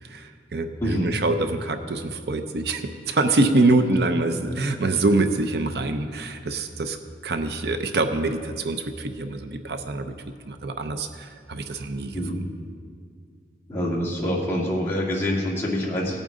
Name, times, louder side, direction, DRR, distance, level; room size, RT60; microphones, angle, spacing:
voice 1, 0.0-7.0 7.2-10.1 10.5-12.2, right 2 dB, 70° right, 7 dB, 0.6 m, -25 dB
voice 2, 0.8-1.1 12.1-12.4 13.7-16.2, equal, 15° left, -4 dB, 1.8 m, -26 dB
17.5 x 8.9 x 3.7 m, 2.1 s
head